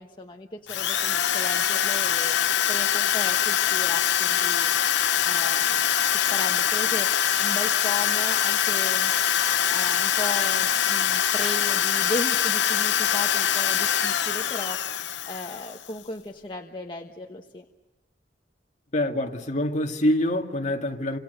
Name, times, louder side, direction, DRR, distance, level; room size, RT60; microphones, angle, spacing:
voice 1, 0.0-4.7 5.2-5.8 6.1-7.1 7.4-9.1 9.7-14.8 15.3-17.6, left 2 dB, 30° left, 1.3 m, -36 dB
Drill, 0.7-15.9, left 9 dB, 85° left, 0.8 m, -23 dB
voice 2, 18.9-21.2, left 1 dB, 45° left, 2.2 m, -25 dB
28.5 x 27.0 x 6.8 m
head